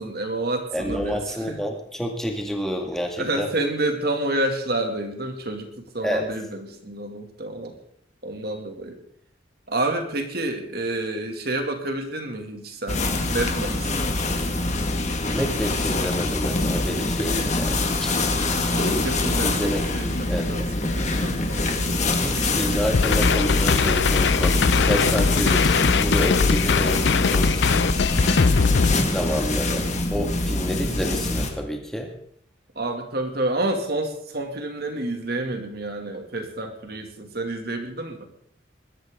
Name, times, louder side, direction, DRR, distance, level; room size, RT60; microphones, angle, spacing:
voice 1, 0.0-1.6 3.2-7.8 8.2-9.0 9.7-13.0 13.3-14.0 18.7-22.1 32.8-38.2, right 2 dB, 55° right, 4 dB, 2.4 m, -29 dB
voice 2, 0.7-3.5 6.0-6.3 15.3-18.2 19.4-19.9 20.3-20.5 22.2-28.1 29.1-32.1, equal, ahead, 1 dB, 2.2 m, -29 dB
sound 1, 12.9-31.5, left 2 dB, 40° left, 1.9 m, -25 dB
sound 2, 22.9-28.9, left 5 dB, 65° left, 0.5 m, -20 dB
21.0 x 13.0 x 3.8 m, 0.67 s
head